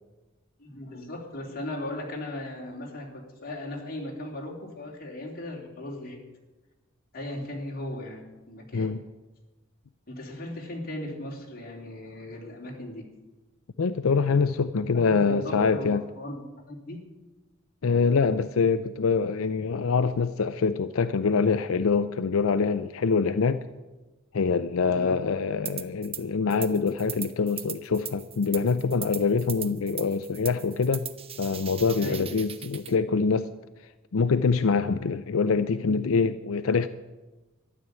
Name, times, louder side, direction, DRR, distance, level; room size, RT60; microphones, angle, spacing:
voice 1, 0.6-6.2 7.1-8.9 10.1-13.0 15.0-17.0 24.9-25.1 32.0-32.3, left 1 dB, 45° left, -1 dB, 3.2 m, -37 dB
voice 2, 13.8-16.0 17.8-23.6 24.3-31.1 31.4-33.5 34.1-36.9, left 5 dB, 90° left, 11 dB, 0.5 m, -25 dB
sound 1, 25.7-26.2 26.5-32.9, right 9 dB, 30° right, 0.7 m, -39 dB
13.0 x 11.0 x 8.2 m, 1.1 s
head